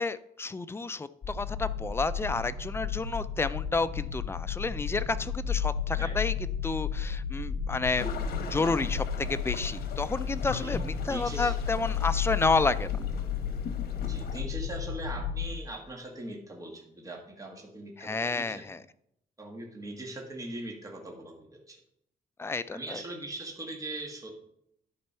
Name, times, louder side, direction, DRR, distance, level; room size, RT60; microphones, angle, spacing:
voice 1, 0.0-6.3 6.6-8.1 8.5-12.9 18.0-18.8 22.4-23.0, left 3 dB, 15° left, 0.3 m, -30 dB
sound 1, 1.2-15.5, left 7 dB, 45° left, 2.4 m, -33 dB
sound 2, 8.0-14.4, left 5 dB, 85° left, 1.1 m, -41 dB
voice 2, 11.1-11.6 14.0-18.6 19.4-21.8 22.7-24.3, right 1 dB, 20° right, 1.6 m, -40 dB
11.0 x 4.4 x 5.5 m
wide cardioid pair, 150°, 16 cm